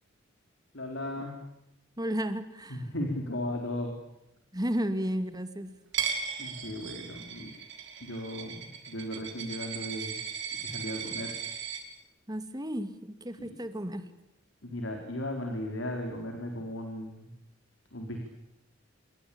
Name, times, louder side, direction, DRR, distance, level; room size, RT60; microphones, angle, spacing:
voice 1, 0.7-1.4 2.7-3.9 6.4-7.5 8.0-10.2 10.5-11.4 13.4-13.6 14.6-17.3 17.9-18.3, left 1 dB, 65° left, 3 dB, 4.4 m, -36 dB
voice 2, 2.0-2.8 4.5-5.7 12.3-14.1, equal, 20° right, 10 dB, 2.3 m, -33 dB
Coin (dropping), 5.9-11.8, right 7 dB, 60° right, 6.4 m, -37 dB
28.5 x 23.0 x 8.7 m, 0.87 s
head